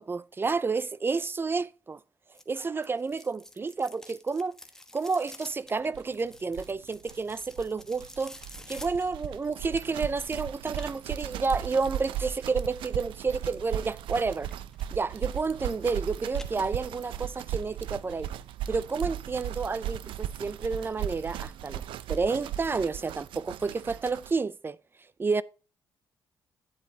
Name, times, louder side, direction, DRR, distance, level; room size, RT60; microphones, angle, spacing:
voice 1, 0.0-2.0 2.5-4.6 4.9-8.4 8.7-14.5 14.9-18.3 18.7-21.8 22.1-24.8 25.2-25.4, right 4 dB, 25° right, 0.4 m, -30 dB
cassette open, 2.3-10.1 10.7-12.4 14.4-14.9 15.2-16.0 16.3-17.2 17.6-17.7 18.3-18.4 18.7-18.8 19.1-19.2 19.5-19.6, left 1 dB, 5° left, 1.2 m, -50 dB
sound 1, 5.9-6.0 6.2-6.3 6.5-24.4, right 11 dB, 90° right, 0.5 m, -37 dB
9.8 x 8.3 x 2.8 m
cardioid pair, 95°, 8 cm